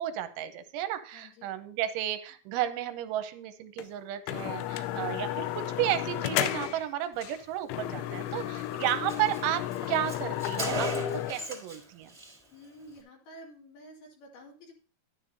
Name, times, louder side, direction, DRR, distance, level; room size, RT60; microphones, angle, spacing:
voice 1, 0.0-12.1, right 12 dB, 80° right, 10 dB, 3.1 m, -33 dB
voice 2, 1.1-1.5 4.7-5.1 8.2-8.7 12.5-14.7, left 1 dB, 60° left, -1 dB, 3.8 m, -51 dB
sound 1, 3.8-3.9 4.3-6.9 7.2-7.4 7.7-11.3, left 13 dB, 90° left, 3.1 m, -33 dB
Car, 8.2-8.3 8.6-8.7 8.9-11.8 12.1-12.4, right 1 dB, 10° right, 2.0 m, -37 dB
11.5 x 9.9 x 2.7 m, 0.42 s
omnidirectional pair, 5.5 m